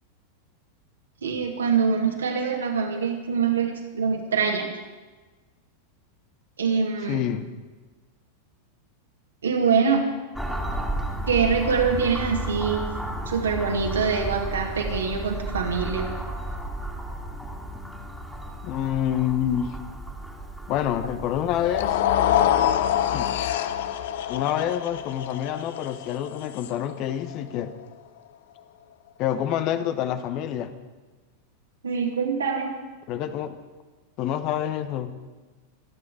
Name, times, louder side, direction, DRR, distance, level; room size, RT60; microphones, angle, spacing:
voice 1, 1.2-4.7 6.6-7.2 9.4-10.1 11.3-12.8 13.3-16.0 31.8-32.7, right 6 dB, 70° right, 2 dB, 2.6 m, -24 dB
voice 2, 7.1-7.5 18.6-19.7 20.7-22.0 23.1-23.3 24.3-27.7 29.2-30.7 33.1-33.6 34.2-35.1, left 10 dB, 40° left, 11 dB, 1.2 m, -27 dB
sound 1, 10.3-22.0, right 1 dB, ahead, 2.5 m, -33 dB
sound 2, 21.6-27.8, left 11 dB, 55° left, 0.8 m, -26 dB
26.0 x 9.7 x 5.0 m, 1.3 s
figure-of-eight pair, 90°, 0 cm